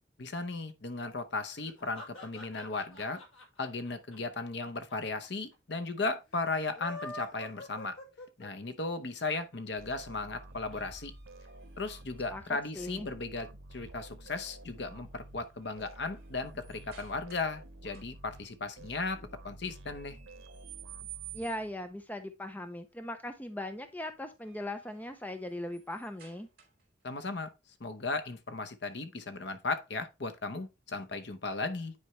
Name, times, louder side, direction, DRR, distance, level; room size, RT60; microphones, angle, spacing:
voice 1, 0.2-3.2 3.6-8.0 8.4-11.1 11.8-20.2 27.0-27.5 27.8-31.9, left 3 dB, 55° left, 0.8 m, -36 dB
sound 1, 1.6-4.9 5.2-5.3 5.5-5.6 6.6-8.7, left 1 dB, 80° left, 2.0 m, -45 dB
sound 2, 9.8-12.6 14.4-14.8 15.2-17.6 17.9-18.4 19.9-21.8 24.1-27.0, right 14 dB, 45° right, 2.5 m, -54 dB
sound 3, 9.8-22.0, right 1 dB, 85° right, 1.0 m, -51 dB
voice 2, 12.8-13.1 21.3-26.5, left 1 dB, 10° left, 0.6 m, -39 dB
9.7 x 4.4 x 3.1 m
head